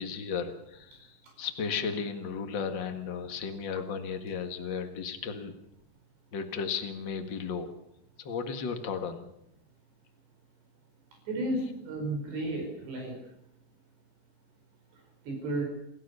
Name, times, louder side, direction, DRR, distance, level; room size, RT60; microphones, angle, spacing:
voice 1, 0.0-5.5 6.3-7.7 8.2-9.3, left 6 dB, 65° left, 6 dB, 1.1 m, -34 dB
voice 2, 11.3-13.2 15.3-15.6, right 1 dB, 70° right, 2 dB, 7.0 m, -33 dB
28.5 x 15.0 x 6.8 m, 0.79 s
omnidirectional pair, 5.1 m